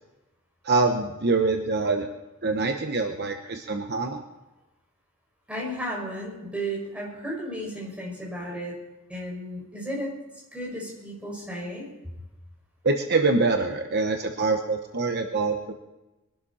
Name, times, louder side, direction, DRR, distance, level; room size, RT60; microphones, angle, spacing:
voice 1, 0.6-2.1 2.4-4.2 12.8-15.7, right 3 dB, 50° right, 5 dB, 1.0 m, -25 dB
voice 2, 5.5-8.8 9.1-10.1 10.5-11.9, equal, 5° right, -4 dB, 6.0 m, -34 dB
22.5 x 12.0 x 4.2 m, 1.0 s
head